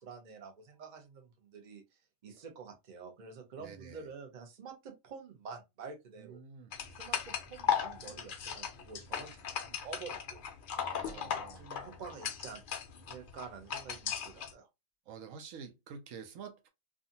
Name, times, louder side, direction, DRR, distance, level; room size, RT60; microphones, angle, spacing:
voice 1, 0.0-1.8 2.2-6.4 6.9-10.4 11.0-12.6 13.1-14.7, right 5 dB, 45° right, 0.7 m, -48 dB
voice 2, 3.6-4.1 6.2-6.7 10.8-11.7 15.1-16.7, right 6 dB, 80° right, 1.0 m, -48 dB
sound 1, 6.7-14.5, left 8 dB, 70° left, 0.5 m, -37 dB
2.6 x 2.4 x 2.6 m
omnidirectional pair, 1.4 m